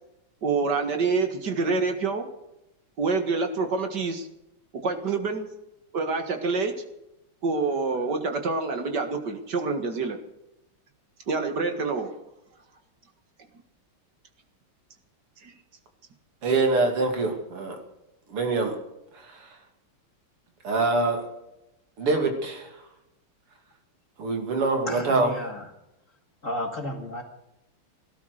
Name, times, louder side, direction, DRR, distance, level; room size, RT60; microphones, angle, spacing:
voice 1, 0.4-2.3 3.0-4.3 4.8-5.5 5.9-6.7 7.4-10.2 11.3-12.1 15.4-15.5, right 4 dB, 50° right, 2.3 m, -26 dB
voice 2, 16.4-17.8 18.3-18.8 19.3-19.5 20.6-21.3 22.0-22.7 24.2-25.3, right 3 dB, 85° right, 3.6 m, -24 dB
voice 3, 24.9-25.7 26.4-27.2, left 1 dB, 35° left, 2.5 m, -33 dB
18.0 x 12.0 x 6.5 m
omnidirectional pair, 2.4 m